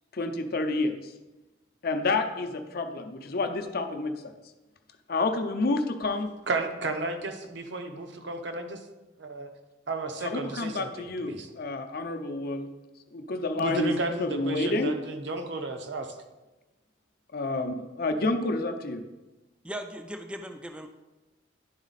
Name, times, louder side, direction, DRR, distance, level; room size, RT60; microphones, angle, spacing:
voice 1, 0.1-1.1 1.8-4.3 5.1-6.3 10.2-12.7 13.1-13.9 14.2-14.9 17.3-19.0, left 2 dB, 50° left, 6 dB, 0.6 m, -29 dB
voice 2, 6.5-8.9 9.2-9.5 9.9-11.5 13.6-16.2, right 2 dB, 65° right, 6 dB, 0.8 m, -33 dB
voice 3, 19.6-20.9, equal, 5° right, 6 dB, 0.3 m, -38 dB
10.5 x 4.0 x 4.0 m, 1.1 s
head